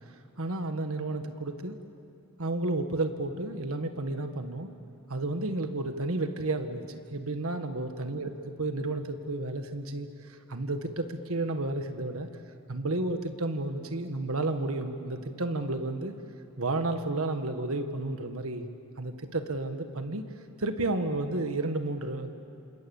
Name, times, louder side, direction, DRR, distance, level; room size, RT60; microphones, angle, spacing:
voice 1, 0.4-1.8 2.4-4.7 5.1-6.8 7.1-12.3 12.7-16.1 16.6-18.7 19.0-20.2 20.6-22.3, right 2 dB, 70° right, 7 dB, 1.6 m, -32 dB
27.5 x 27.5 x 7.2 m, 2.9 s
head